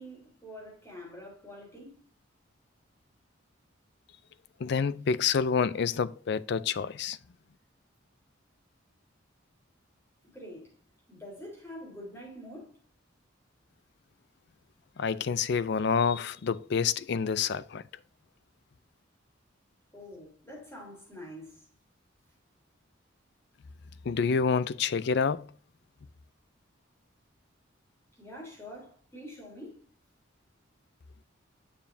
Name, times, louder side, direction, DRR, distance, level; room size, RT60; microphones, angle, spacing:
voice 1, 0.0-1.9 10.3-10.6 11.1-12.7 19.9-21.5 28.2-29.8, equal, 15° left, 3.5 m, -45 dB
voice 2, 4.6-7.2 15.0-17.8 24.1-25.5, left 6 dB, 60° left, 0.4 m, -28 dB
7.2 x 7.1 x 2.6 m
head